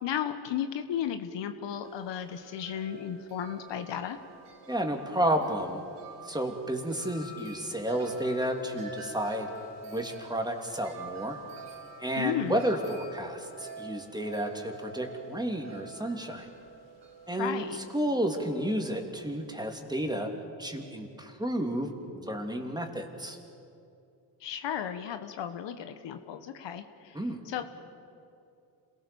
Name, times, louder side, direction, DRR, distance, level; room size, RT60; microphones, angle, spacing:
voice 1, 0.0-4.2 12.2-12.6 17.4-17.8 24.4-27.6, left 9 dB, 65° left, 8 dB, 1.4 m, -34 dB
Wind chime, 1.8-19.7, right 3 dB, 60° right, 4.1 m, -47 dB
voice 2, 4.7-5.8 6.2-9.5 9.8-11.4 12.0-16.5 17.3-17.6 17.9-20.3 20.6-23.4 27.1-27.4, right 1 dB, 10° right, 3 dB, 3.0 m, -31 dB
27.0 x 18.5 x 7.1 m, 2.6 s
supercardioid pair, 70°, 47 cm